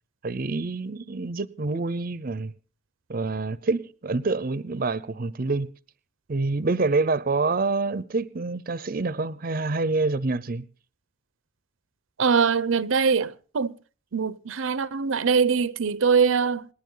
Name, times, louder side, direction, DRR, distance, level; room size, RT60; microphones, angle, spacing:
voice 1, 0.2-2.5 3.1-5.7 6.3-10.6, right 3 dB, 45° right, 0.6 m, -27 dB
voice 2, 12.2-13.7 14.1-16.7, right 5 dB, 80° right, 0.6 m, -22 dB
28.0 x 10.0 x 3.8 m
head